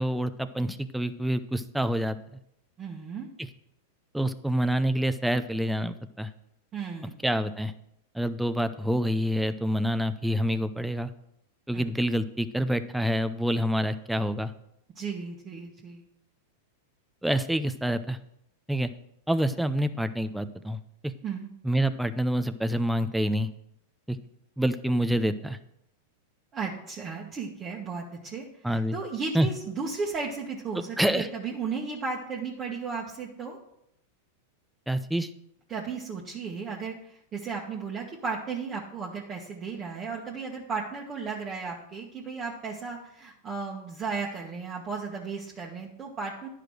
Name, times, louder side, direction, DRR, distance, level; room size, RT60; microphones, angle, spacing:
voice 1, 0.0-2.2 3.4-3.5 4.1-6.3 7.2-7.7 8.1-11.1 11.7-14.5 17.2-18.2 18.7-18.9 19.3-20.8 21.0-21.1 21.6-23.5 24.1-24.2 24.6-25.6 28.6-29.0 29.3-29.5 31.0-31.3 34.9-35.3, equal, 5° right, 10 dB, 0.6 m, -27 dB
voice 2, 2.8-3.3 6.7-7.1 11.7-11.9 14.9-16.0 21.2-21.5 26.5-33.6 35.7-46.5, right 5 dB, 30° right, -2 dB, 1.4 m, -35 dB
10.5 x 5.0 x 6.3 m, 0.77 s
hypercardioid pair, 110°, 0 cm